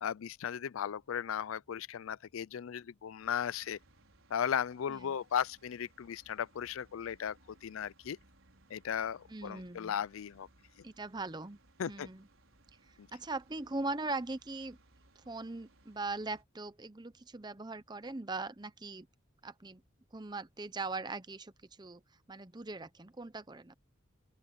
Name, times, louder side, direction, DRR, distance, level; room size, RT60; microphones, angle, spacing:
voice 1, 0.0-3.8 4.3-8.2 8.7-10.5 11.8-12.1 13.0-13.1, left 8 dB, 90° left, 0.4 m, -36 dB
sound 1, 3.2-16.4, right 2 dB, 90° right, 5.5 m, -66 dB
voice 2, 9.3-10.0 10.8-11.6 11.9-12.3 13.1-14.8 15.2-19.1 19.4-19.8 20.1-21.5 21.8-22.0 22.3-23.7, right 3 dB, 20° right, 0.7 m, -40 dB
open air
head